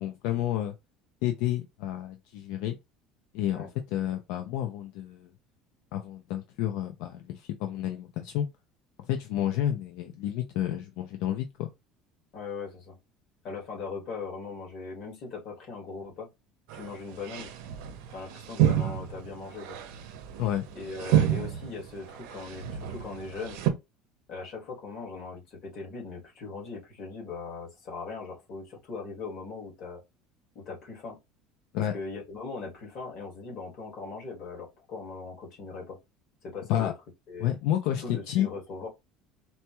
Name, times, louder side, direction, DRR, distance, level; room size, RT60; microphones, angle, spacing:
voice 1, 0.0-0.7 1.2-2.8 3.3-5.3 5.9-8.5 9.0-11.7 20.4-20.6 31.7-31.9 36.7-36.9 37.4-38.5, left 12 dB, 70° left, 0.5 m, -30 dB
voice 2, 12.3-13.0 13.4-16.3 16.7-17.5 18.1-19.8 20.8-23.6 24.3-30.0 30.6-31.2 31.9-36.0 36.4-36.9 37.3-37.5 38.0-38.9, left 4 dB, 40° left, 1.8 m, -39 dB
sound 1, 16.7-17.0 17.2-23.7, right 11 dB, 75° right, 0.6 m, -29 dB
4.2 x 2.2 x 2.9 m
cardioid pair, 170°, 0 cm